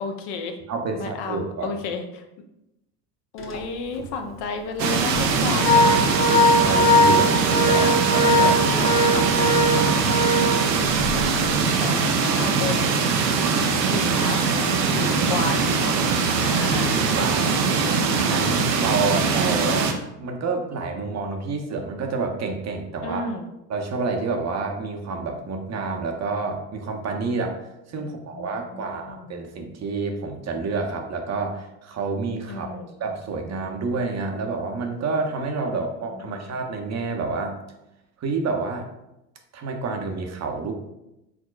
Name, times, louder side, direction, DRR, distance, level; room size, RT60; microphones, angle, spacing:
voice 1, 0.0-0.6 0.9-2.2 3.3-6.3 7.8-8.0 8.4-9.9 11.8-13.1 13.7-14.5 14.9-17.0 23.0-23.5 28.0-29.5 32.5-33.0 35.7-36.6, left 4 dB, 55° left, 5 dB, 0.8 m, -33 dB
voice 2, 0.7-1.7 6.5-8.9 17.2-17.6 18.2-19.9 20.2-23.2 23.7-27.6 27.9-37.6 38.2-38.9 39.5-40.7, right 4 dB, 35° right, 3 dB, 0.7 m, -28 dB
Organ, 3.4-3.6 4.0-4.1 4.9-11.2, left 1 dB, 25° left, 0.9 m, -20 dB
sound 1, 4.8-19.9, right 5 dB, 85° right, 0.7 m, -22 dB
4.8 x 3.6 x 2.3 m, 0.88 s
hypercardioid pair, 75°, 48 cm